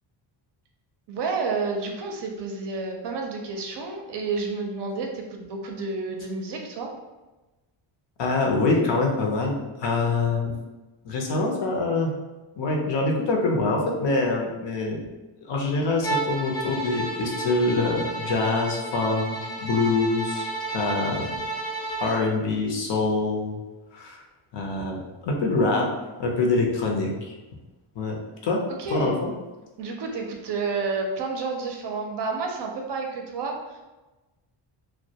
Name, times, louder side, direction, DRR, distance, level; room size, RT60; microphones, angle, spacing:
voice 1, 1.1-6.9 28.8-29.2 29.8-33.6, right 4 dB, 55° right, 1 dB, 0.5 m, -30 dB
voice 2, 8.2-10.5 11.0-12.1 12.6-15.0 15.5-21.3 22.0-23.6 23.9-24.2 24.5-25.9 26.2-27.3 28.0-28.6 28.9-29.3, left 3 dB, 60° left, 0 dB, 0.6 m, -25 dB
Bowed string instrument, 16.0-22.3, right 3 dB, 10° left, 0.4 m, -32 dB
2.1 x 2.1 x 2.7 m, 1.1 s
cardioid pair, 105°, 50 cm